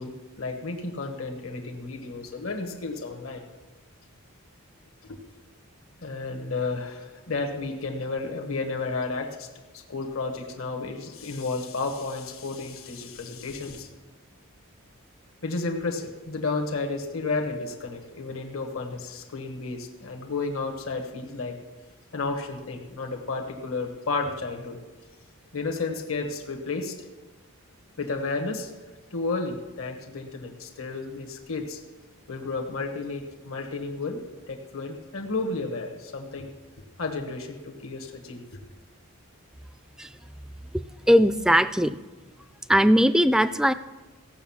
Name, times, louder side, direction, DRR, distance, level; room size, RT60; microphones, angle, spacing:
voice 1, 0.0-3.4 5.0-5.2 6.0-9.5 9.7-13.9 15.4-21.6 22.1-24.8 25.5-27.1 28.0-28.7 29.1-31.8 32.3-34.2 34.5-36.5 37.0-38.6, left 3 dB, 65° left, 3 dB, 1.4 m, -32 dB
voice 2, 40.7-42.0 42.7-43.7, equal, 5° right, 13 dB, 0.3 m, -20 dB
16.0 x 6.3 x 7.2 m, 1.2 s
head